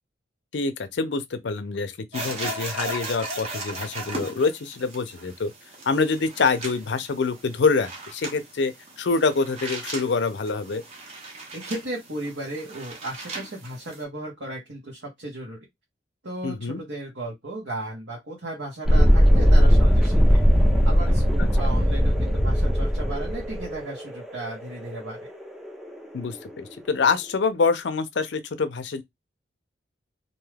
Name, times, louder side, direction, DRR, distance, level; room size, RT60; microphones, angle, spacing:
voice 1, 0.5-5.5 5.9-10.8 16.4-16.8 21.4-21.5 26.1-29.0, left 4 dB, 70° left, 0.5 m, -25 dB
sound 1, 2.1-14.0, right 2 dB, 35° right, 0.9 m, -37 dB
voice 2, 11.5-15.6 16.2-20.4 20.8-25.2, right 1 dB, 75° right, 1.1 m, -35 dB
Thunderstorm, 18.9-26.3, equal, ahead, 0.5 m, -19 dB
2.6 x 2.3 x 3.2 m
head